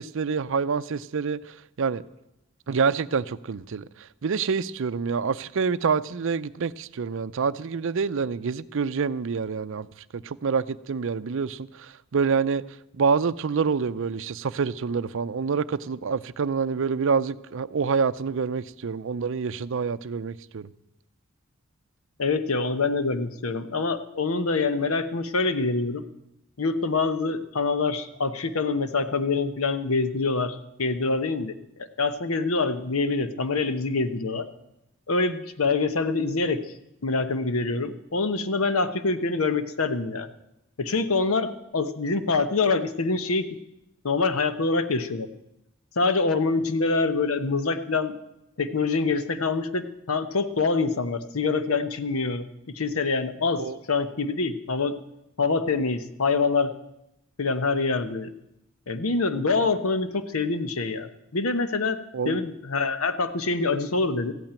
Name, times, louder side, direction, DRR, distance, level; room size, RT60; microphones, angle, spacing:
voice 1, 0.0-2.0 2.7-9.9 10.1-12.6 12.9-20.7 53.6-53.8 62.1-62.4, right 5 dB, 65° right, 0.5 m, -27 dB
voice 2, 22.2-26.0 26.6-31.5 32.0-34.4 35.1-36.6 37.0-40.3 40.8-43.5 44.0-45.3 46.0-48.1 48.6-53.6 53.9-54.9 55.4-56.7 57.4-58.3 58.9-62.0 62.2-64.3, left 3 dB, 90° left, 1.0 m, -25 dB
14.5 x 8.9 x 8.9 m
head